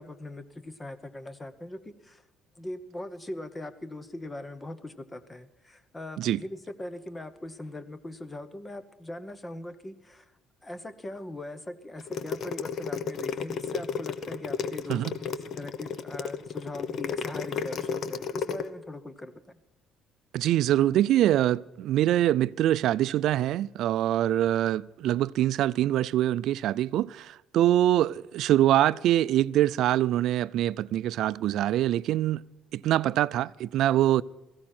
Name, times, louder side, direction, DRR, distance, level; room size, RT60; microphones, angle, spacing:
voice 1, 0.0-2.2 2.6-10.3 10.6-15.1 15.3-19.6, left 1 dB, 15° left, 0.9 m, -40 dB
sound 1, 12.0-18.6, left 6 dB, 45° left, 0.9 m, -32 dB
voice 2, 20.3-32.4 32.7-34.2, right 13 dB, 65° right, 0.4 m, -24 dB
17.5 x 15.0 x 4.4 m
cardioid pair, 155°, 0 cm